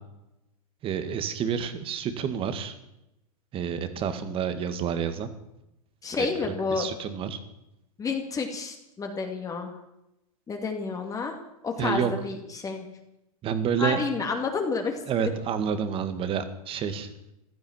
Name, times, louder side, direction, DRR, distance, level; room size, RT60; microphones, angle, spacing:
voice 1, 0.8-2.7 3.5-5.3 6.2-7.4 11.8-12.1 13.4-14.0 15.1-17.1, right 7 dB, 30° right, 11 dB, 2.0 m, -29 dB
voice 2, 6.0-6.9 8.0-9.7 10.5-11.3 11.6-12.9 13.8-15.3, left 4 dB, 20° left, 4 dB, 2.3 m, -30 dB
15.5 x 12.5 x 7.3 m, 0.87 s
hypercardioid pair, 125°, 19 cm